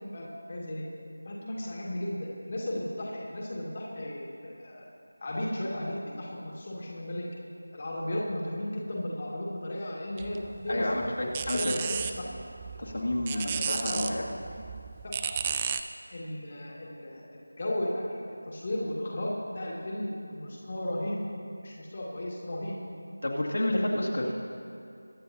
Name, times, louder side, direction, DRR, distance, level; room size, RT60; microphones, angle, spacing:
voice 1, 0.1-0.8 1.2-4.9 5.2-7.2 7.7-12.3 13.3-14.1 15.0-15.4 16.1-18.0 18.5-21.2 21.6-22.8 23.7-23.8, left 1 dB, 35° left, -4 dB, 1.9 m, -35 dB
sound 1, 10.2-15.8, right 7 dB, 15° right, 0.3 m, -34 dB
voice 2, 10.7-11.7 12.8-14.3 23.2-24.3, left 1 dB, 65° left, -3 dB, 2.2 m, -30 dB
23.0 x 9.4 x 2.8 m, 2.6 s
figure-of-eight pair, 170°, 0 cm